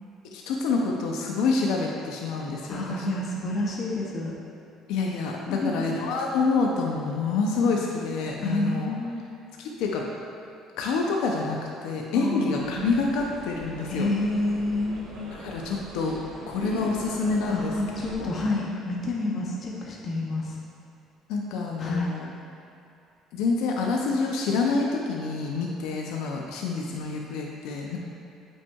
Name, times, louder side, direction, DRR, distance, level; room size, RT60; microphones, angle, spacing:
voice 1, 0.3-3.0 4.9-8.9 9.6-10.0 10.8-11.6 11.8-14.1 15.4-16.2 16.5-17.7 18.3-18.4 21.3-22.3 23.3-28.0, left 4 dB, 80° left, 0 dB, 0.6 m, -27 dB
voice 2, 2.7-4.3 5.5-6.1 8.4-9.3 12.1-12.8 13.9-15.1 17.5-20.6 21.8-22.1, left 2 dB, 40° left, -3 dB, 0.8 m, -29 dB
Cologne cathedral, 12.6-18.1, right 1 dB, 90° right, 1.3 m, -41 dB
8.2 x 5.5 x 2.4 m, 2.6 s
cardioid pair, 125°, 0 cm